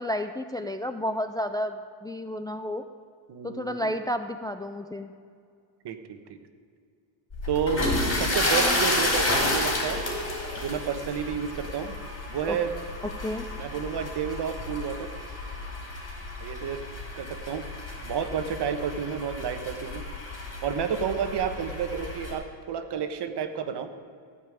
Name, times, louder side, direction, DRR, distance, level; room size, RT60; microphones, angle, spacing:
voice 1, 0.0-2.9 3.4-5.1 12.5-12.6 13.2-13.5, left 1 dB, 10° left, 8 dB, 0.4 m, -31 dB
voice 2, 3.3-3.9 5.8-6.4 7.5-7.8 8.2-10.0 10.6-11.9 12.3-12.7 13.6-15.1 16.4-16.8 17.2-17.7 18.0-20.0 20.6-23.9, right 7 dB, 55° right, 9 dB, 1.4 m, -30 dB
sound 1, 7.3-22.3, left 1 dB, 25° left, 4.3 m, -31 dB
16.0 x 5.5 x 9.7 m, 2.2 s
cardioid pair, 105°, 48 cm